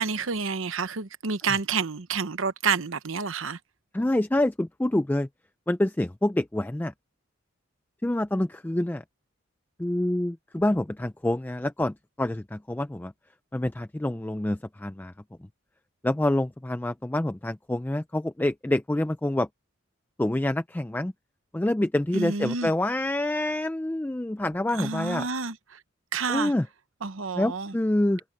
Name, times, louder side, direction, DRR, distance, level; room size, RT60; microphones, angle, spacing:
voice 1, 0.0-3.6 22.1-22.7 24.7-25.8 26.1-26.5 27.0-27.7, right 5 dB, 80° right, 1.0 m, -29 dB
voice 2, 3.9-5.3 5.7-6.9 8.0-9.0 9.8-13.1 13.5-15.1 16.0-19.5 20.2-21.1 21.5-25.3 26.3-26.7 27.4-28.2, left 1 dB, 10° left, 0.3 m, -27 dB
head